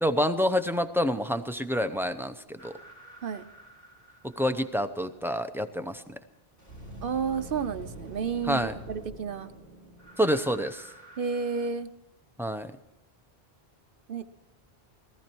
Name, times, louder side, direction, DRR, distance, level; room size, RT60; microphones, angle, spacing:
voice 1, 0.0-2.7 4.2-6.2 8.5-8.7 10.2-10.9 12.4-12.7, equal, 5° right, 9 dB, 0.6 m, -28 dB
sound 1, 2.6-4.9 6.6-11.7, right 1 dB, 15° left, 3.4 m, -47 dB
voice 2, 7.0-9.5 11.2-11.9 14.1-14.2, right 6 dB, 60° right, 11 dB, 0.8 m, -31 dB
18.5 x 14.0 x 4.5 m, 0.90 s
omnidirectional pair, 1.1 m